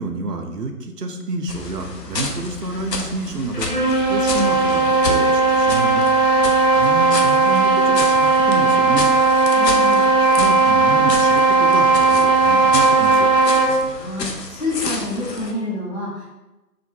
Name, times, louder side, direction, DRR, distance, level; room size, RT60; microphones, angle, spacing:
voice 1, 0.0-6.0 6.4-9.1 10.4-13.3, right 2 dB, 75° right, 4 dB, 0.5 m, -28 dB
sound 1, 1.5-15.5, left 3 dB, 90° left, 0.6 m, -31 dB
sound 2, 3.5-13.8, right 3 dB, 75° left, 1.4 m, -16 dB
voice 2, 9.5-10.0 13.9-16.3, left 2 dB, 45° left, -7 dB, 1.1 m, -27 dB
2.6 x 2.4 x 2.8 m, 1.0 s
figure-of-eight pair, 155°, 48 cm